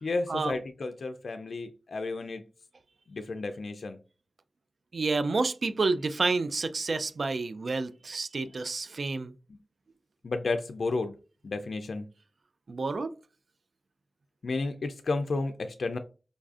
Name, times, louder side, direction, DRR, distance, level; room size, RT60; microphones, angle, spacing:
voice 1, 0.0-2.4 3.1-4.0 9.5-9.6 10.2-11.1 11.4-12.1 14.4-16.0, left 3 dB, 85° left, 0.3 m, -32 dB
voice 2, 4.9-9.3 12.7-13.1, right 3 dB, 75° right, 0.3 m, -29 dB
5.1 x 2.4 x 2.4 m
cardioid pair, 40°, 0 cm